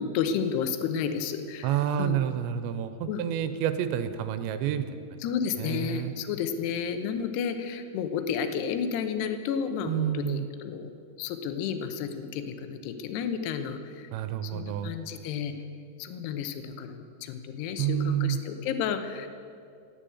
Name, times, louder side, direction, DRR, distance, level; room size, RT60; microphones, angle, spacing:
voice 1, 0.0-2.2 3.1-3.2 5.2-10.9 11.2-14.1 14.4-15.5 16.0-19.3, left 7 dB, 75° left, 8 dB, 2.8 m, -32 dB
voice 2, 1.6-5.2 5.6-6.1 9.9-10.5 14.1-14.9 17.8-18.4, right 10 dB, 85° right, 10 dB, 2.9 m, -29 dB
14.0 x 9.0 x 8.5 m, 2.4 s
omnidirectional pair, 5.1 m